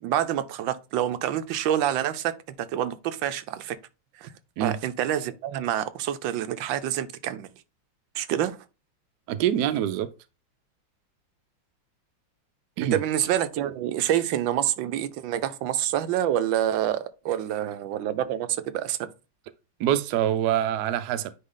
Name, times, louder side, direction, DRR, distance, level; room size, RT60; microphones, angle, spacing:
voice 1, 0.0-3.8 4.2-4.3 4.6-7.5 8.1-8.6 12.8-19.1, right 11 dB, 85° right, 1.4 m, -27 dB
voice 2, 9.3-10.1 12.8-13.0 19.8-21.3, right 11 dB, 70° right, 1.1 m, -25 dB
9.5 x 3.2 x 3.7 m
omnidirectional pair, 2.0 m